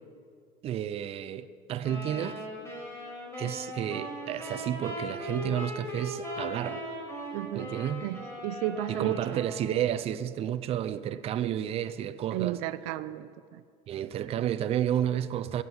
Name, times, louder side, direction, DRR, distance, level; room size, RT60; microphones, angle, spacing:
voice 1, 0.6-2.5 3.4-6.8 7.5-8.1 8.9-12.6 13.9-15.6, right 10 dB, 40° right, 0.5 m, -31 dB
sound 1, 1.8-9.8, equal, 15° left, 4.9 m, -39 dB
voice 2, 7.3-7.7 8.0-9.4 12.3-13.6, right 13 dB, 80° right, 0.6 m, -33 dB
15.5 x 9.6 x 7.1 m
cardioid pair, 140°, 16 cm